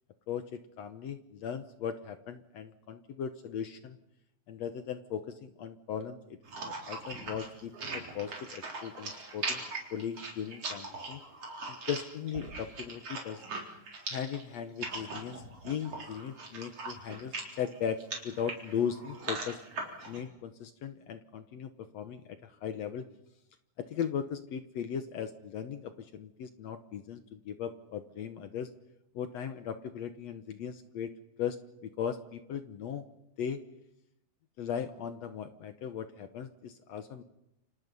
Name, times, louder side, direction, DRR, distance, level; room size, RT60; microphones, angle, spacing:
voice 1, 0.3-4.0 4.5-9.6 9.9-11.2 11.7-13.4 14.1-19.6 20.1-23.1 23.8-28.7 29.1-31.1 31.4-31.6 31.8-33.0 33.4-33.6 34.6-37.2, left 8 dB, 65° left, 9 dB, 1.9 m, -38 dB
sound 1, 6.4-20.2, right 3 dB, 45° right, 4.9 m, -40 dB
29.0 x 26.0 x 5.5 m, 0.86 s
omnidirectional pair, 3.8 m